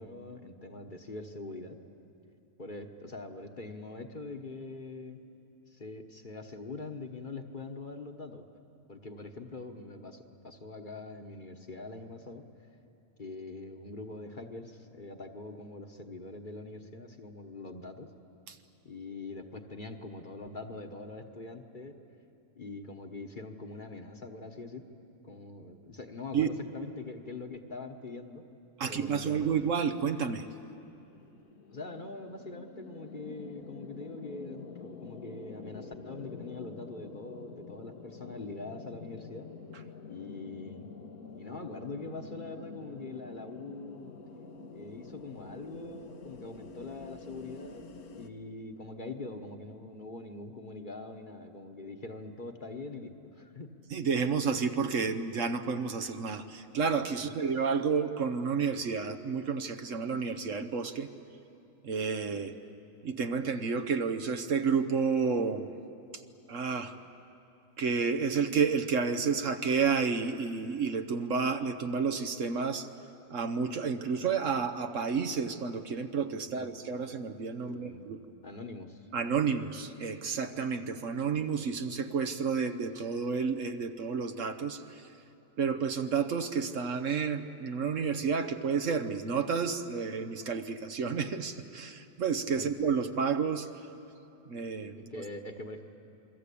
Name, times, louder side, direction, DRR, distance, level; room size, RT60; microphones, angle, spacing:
voice 1, 0.0-1.8 2.6-5.2 5.7-8.4 8.9-12.4 13.2-18.1 18.8-22.0 22.6-24.9 25.2-28.5 28.8-29.5 31.7-39.5 40.1-40.9 41.3-44.1 44.7-53.7 57.2-57.3 76.5-76.8 77.6-78.1 78.4-79.1 92.5-92.7 95.1-95.8, left 3 dB, 35° left, 4 dB, 1.3 m, -43 dB
voice 2, 28.8-30.5 53.9-61.1 61.8-62.5 63.0-65.7 66.5-67.0 67.8-72.9 73.3-78.2 79.1-85.1 85.6-93.7 94.5-95.1, right 5 dB, 60° right, 8 dB, 1.2 m, -30 dB
sound 1, 30.6-48.3, left 4 dB, 80° left, 1.7 m, -48 dB
28.5 x 22.5 x 8.5 m, 2.8 s
omnidirectional pair, 1.5 m